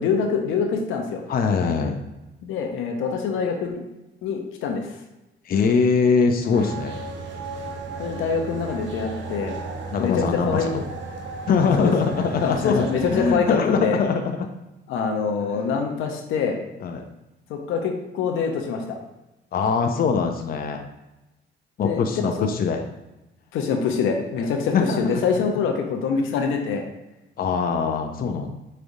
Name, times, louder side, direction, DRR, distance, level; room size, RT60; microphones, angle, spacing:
voice 1, 0.0-1.2 2.4-3.8 4.2-4.9 8.0-9.6 10.0-10.7 11.8-11.9 12.4-14.0 14.9-16.6 17.5-19.0 21.8-22.5 23.5-26.9, left 5 dB, 90° left, 3 dB, 0.7 m, -25 dB
voice 2, 1.3-2.0 5.5-7.1 9.9-10.9 11.5-14.5 15.5-15.7 16.8-17.0 19.5-20.9 21.8-22.9 24.4-25.2 26.2-26.4 27.4-28.5, left 5 dB, 50° left, 4 dB, 0.5 m, -22 dB
sound 1, 6.5-13.3, right 3 dB, 65° right, 0.8 m, -34 dB
4.9 x 3.2 x 2.6 m, 0.98 s
cardioid pair, 90°, 20 cm